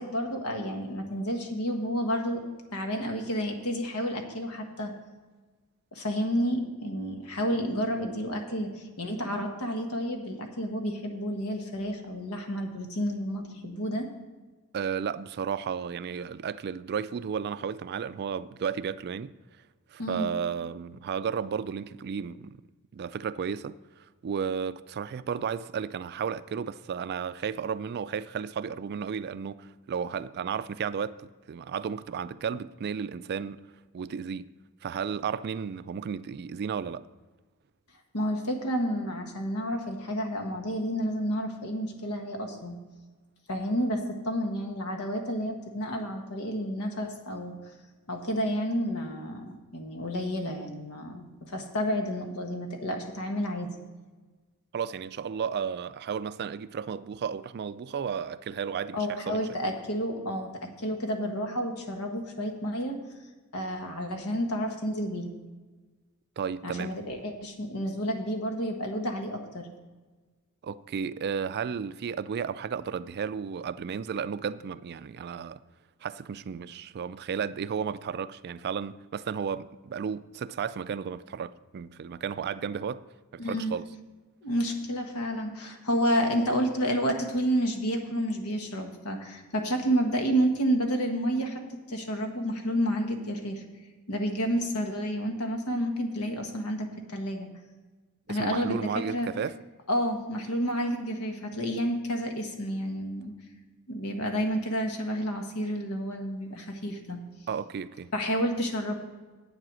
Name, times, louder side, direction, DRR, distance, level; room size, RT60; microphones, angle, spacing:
voice 1, 0.0-2.4 2.7-4.9 5.9-14.1 20.0-20.3 38.1-42.8 43.5-47.5 48.1-53.7 58.9-63.0 63.5-65.3 66.6-69.7 83.4-83.8 84.4-91.6 91.9-93.6 94.1-97.5 98.3-99.3 99.9-103.3 103.9-107.2 108.1-109.0, equal, 85° left, 1.5 m, -30 dB
voice 2, 14.7-19.3 19.9-22.6 22.9-23.8 24.2-33.6 33.9-34.5 34.8-37.1 54.7-59.5 66.4-67.0 70.6-75.6 76.0-83.0 83.3-83.8 98.3-99.6 107.5-108.1, right 7 dB, 50° right, 0.3 m, -33 dB
8.9 x 7.6 x 6.2 m
head